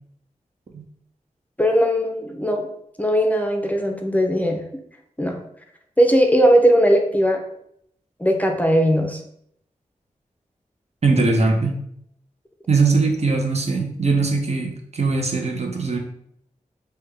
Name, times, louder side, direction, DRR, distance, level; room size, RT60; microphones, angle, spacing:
voice 1, 1.6-2.7 3.0-4.6 5.2-5.4 6.0-7.4 8.2-9.2, equal, 10° left, 2 dB, 0.5 m, -18 dB
voice 2, 11.0-11.8 12.7-16.0, right 3 dB, 50° right, 2 dB, 0.6 m, -20 dB
3.4 x 2.2 x 3.4 m, 0.72 s
cardioid pair, 50°, 14 cm